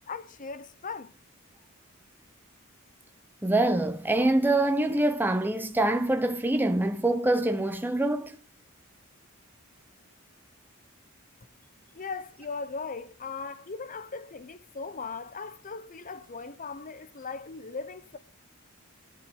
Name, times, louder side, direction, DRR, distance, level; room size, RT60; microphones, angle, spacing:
voice 1, 0.1-1.1 11.9-18.2, left 4 dB, 40° left, 0.9 m, -38 dB
voice 2, 3.4-8.4, right 2 dB, 10° right, 0.9 m, -25 dB
14.0 x 11.0 x 5.5 m
head